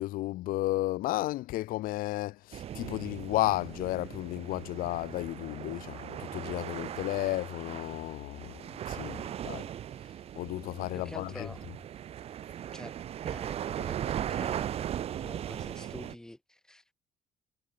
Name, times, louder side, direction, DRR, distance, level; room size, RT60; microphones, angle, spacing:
voice 1, 0.0-9.2 9.4-9.7 10.4-11.5, left 17 dB, 75° left, 2.7 m, -33 dB
sound 1, 2.5-16.2, right 10 dB, 45° right, 3.5 m, -38 dB
voice 2, 8.9-9.3 10.9-11.6 12.7-12.9 13.2-14.7 15.2-16.9, left 1 dB, 5° left, 4.4 m, -47 dB
cardioid pair, 175°, 15 cm